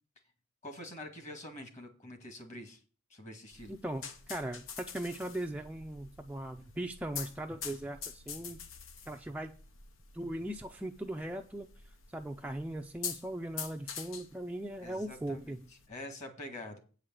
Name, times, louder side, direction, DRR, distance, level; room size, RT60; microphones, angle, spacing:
voice 1, 0.6-2.8 3.1-3.7 14.8-16.8, left 1 dB, 35° left, 6 dB, 1.9 m, -46 dB
sound 1, 3.5-15.9, left 7 dB, 75° left, 1.0 m, -46 dB
voice 2, 3.7-8.6 9.1-9.5 10.1-11.7 12.1-15.7, right 1 dB, 5° right, 3 dB, 0.4 m, -39 dB
8.7 x 4.9 x 7.5 m, 0.38 s
head